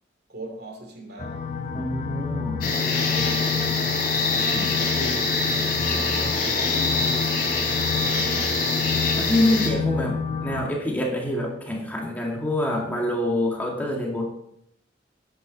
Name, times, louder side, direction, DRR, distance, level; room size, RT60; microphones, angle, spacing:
voice 1, 0.3-1.4 2.8-3.7 4.3-7.2 8.1-8.7 10.0-10.1, equal, 60° right, 2.9 m, -39 dB
sound 1, 1.2-10.7, left 6 dB, 40° left, 0.7 m, -29 dB
voice 2, 1.7-2.7 9.2-14.2, left 1 dB, 10° left, 2.2 m, -26 dB
sound 2, 2.6-9.7, left 3 dB, 55° left, 3.3 m, -25 dB
11.5 x 9.4 x 4.2 m
head